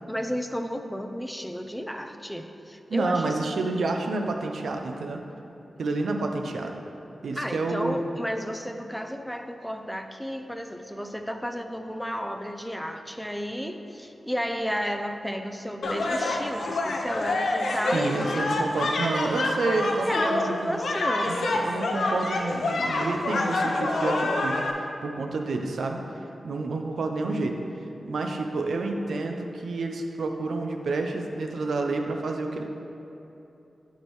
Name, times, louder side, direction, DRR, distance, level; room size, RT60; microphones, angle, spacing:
voice 1, 0.1-3.4 7.4-18.4 20.0-21.4, equal, 5° left, 5 dB, 0.4 m, -32 dB
voice 2, 2.9-5.2 5.8-6.8 7.2-8.0 17.9-20.8 21.2-26.0 26.4-27.6 28.0-32.6, right 3 dB, 80° right, 3 dB, 0.5 m, -29 dB
sound 1, 15.8-24.7, left 2 dB, 75° left, 0.6 m, -27 dB
11.0 x 4.4 x 3.1 m, 3.0 s
wide cardioid pair, 95°, 0 cm